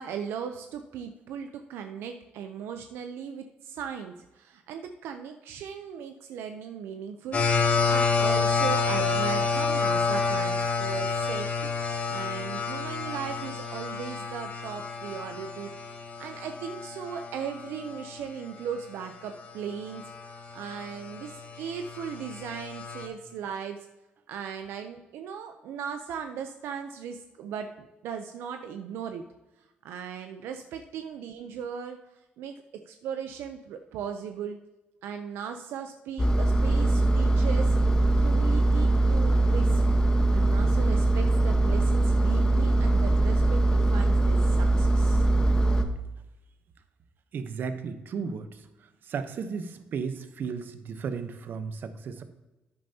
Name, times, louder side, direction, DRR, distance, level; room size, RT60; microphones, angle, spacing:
voice 1, 0.0-11.7 12.1-15.7 16.2-20.1 20.5-23.8 24.3-29.2 29.8-32.0 32.4-34.6 35.0-37.8 38.2-39.8 40.3-45.2, right 7 dB, 85° right, 6 dB, 0.6 m, -37 dB
sound 1, 7.3-18.2 18.8-18.9 19.4-23.1, left 4 dB, 45° left, 2.2 m, -29 dB
Engine, 36.2-45.8, right 2 dB, 20° left, 1.1 m, -22 dB
voice 2, 47.3-48.6 49.0-52.2, right 5 dB, 60° right, 10 dB, 0.9 m, -34 dB
10.5 x 9.1 x 2.8 m, 1.0 s
cardioid pair, 85°, 4 cm